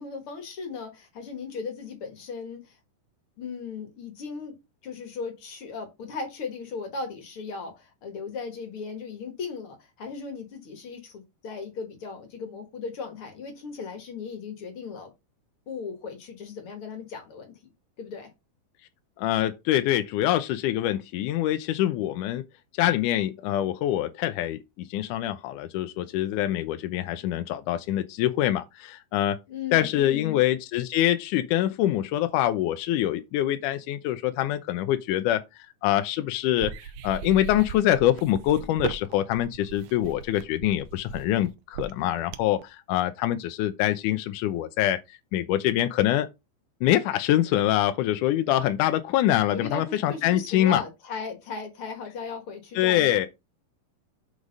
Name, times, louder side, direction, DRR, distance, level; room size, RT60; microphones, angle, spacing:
voice 1, 0.0-2.8 3.4-4.6 4.8-15.1 15.7-17.7 18.0-18.3 29.5-30.4 49.5-53.3, left 5 dB, 50° left, 2.1 m, -37 dB
voice 2, 19.2-22.4 22.8-29.4 29.7-35.4 35.8-36.7 37.0-45.0 45.3-46.3 46.8-50.8 52.8-53.3, left 13 dB, 80° left, 2.0 m, -25 dB
sound 1, 36.5-42.6, right 10 dB, 85° right, 1.4 m, -37 dB
6.5 x 4.9 x 5.2 m
omnidirectional pair, 3.8 m